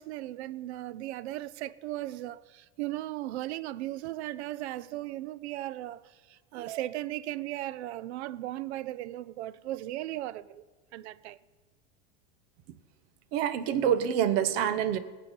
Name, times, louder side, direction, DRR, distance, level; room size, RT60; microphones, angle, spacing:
voice 1, 0.0-6.0 6.3-10.6 10.9-11.4, right 15 dB, 85° right, 0.6 m, -37 dB
voice 2, 13.3-15.0, right 9 dB, 65° right, 1.1 m, -26 dB
19.5 x 8.1 x 5.3 m
supercardioid pair, 130°, 32 cm